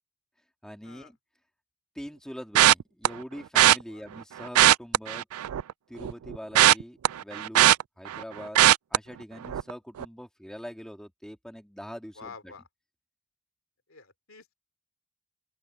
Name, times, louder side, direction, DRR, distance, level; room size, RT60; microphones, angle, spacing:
voice 1, 0.6-1.2 1.9-5.3 5.9-8.6 8.9-12.5, equal, 5° left, 2.5 m, -43 dB
sound 1, 2.6-3.1 3.6-3.8 4.4-5.7 6.0-8.2 8.6-9.0 9.4-9.7 10.0-10.1, right 13 dB, 85° right, 0.3 m, -19 dB
voice 2, 12.2-12.6 13.9-14.5, left 4 dB, 70° left, 2.9 m, -48 dB
open air
head